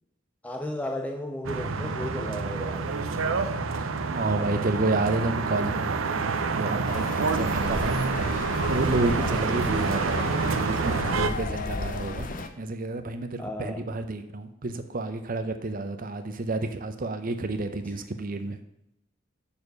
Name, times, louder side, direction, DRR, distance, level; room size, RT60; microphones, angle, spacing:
voice 1, 0.4-3.0 7.3-7.6 9.1-9.4 13.4-13.9, left 1 dB, 10° left, 4 dB, 0.4 m, -35 dB
sound 1, 1.4-11.3, right 4 dB, 85° right, 0.6 m, -28 dB
voice 2, 3.7-8.0 8.3-12.3 12.6-18.6, right 2 dB, 45° right, 8 dB, 0.7 m, -30 dB
sound 2, 6.8-12.5, left 3 dB, 45° left, 0.7 m, -34 dB
7.1 x 4.3 x 6.5 m, 0.84 s
head